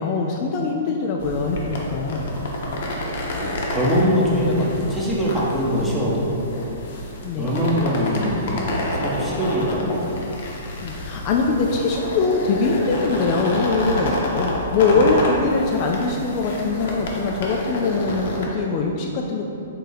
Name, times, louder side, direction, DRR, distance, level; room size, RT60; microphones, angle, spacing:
voice 1, 0.0-2.3 7.2-7.5 10.8-19.5, left 4 dB, 40° left, 0 dB, 0.3 m, -22 dB
sound 1, 1.2-18.5, left 1 dB, 60° left, 0.7 m, -29 dB
voice 2, 3.4-6.4 7.4-10.2 11.5-11.6 14.8-15.1, equal, 5° right, -6 dB, 0.8 m, -23 dB
3.7 x 2.7 x 4.0 m, 3.0 s
hypercardioid pair, 125°, 0 cm